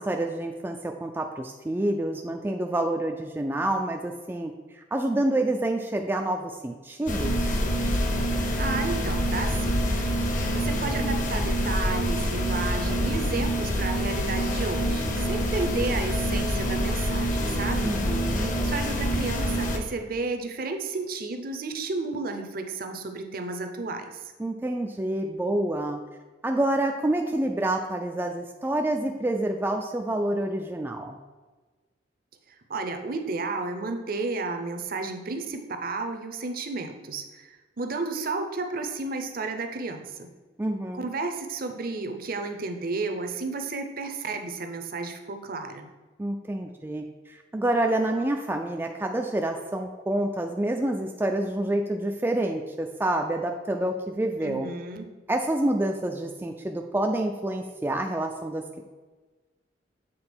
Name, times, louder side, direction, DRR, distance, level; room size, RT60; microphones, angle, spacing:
voice 1, 0.0-7.6 17.8-18.5 24.4-26.0 26.4-31.2 40.6-41.0 46.2-54.7 55.3-58.8, right 1 dB, 10° right, 3 dB, 0.3 m, -28 dB
sound 1, 7.1-19.8, equal, 45° left, 0.8 m, -26 dB
voice 2, 8.6-10.1 10.5-18.0 18.3-24.3 32.5-40.3 40.9-45.9 54.4-55.1, right 3 dB, 50° right, 6 dB, 0.6 m, -32 dB
7.8 x 3.7 x 4.4 m, 1.3 s
head